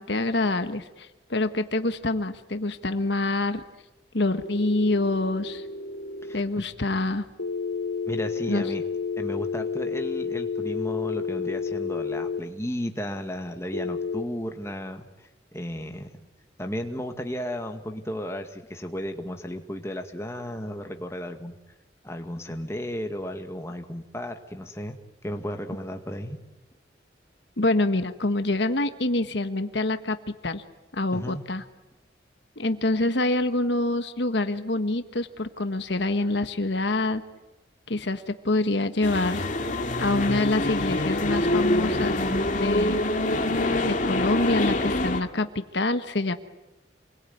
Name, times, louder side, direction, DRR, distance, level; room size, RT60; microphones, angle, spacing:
voice 1, 0.0-3.6 4.1-5.6 6.3-7.3 8.5-8.6 27.6-30.6 30.9-31.6 32.6-37.2 37.9-39.5 40.0-43.0 43.8-46.3, left 2 dB, 65° left, 9 dB, 1.4 m, -26 dB
sound 1, 4.4-6.4 7.4-12.4 13.7-14.2, left 5 dB, 80° left, 1.0 m, -31 dB
voice 2, 6.2-6.6 8.1-8.8 9.2-16.1 16.6-21.6 22.0-25.0 25.2-26.4 31.1-31.4, equal, 15° left, 5 dB, 2.0 m, -34 dB
sound 2, 39.0-45.2, left 1 dB, 40° left, 2.4 m, -25 dB
28.0 x 22.0 x 9.5 m, 1.0 s
head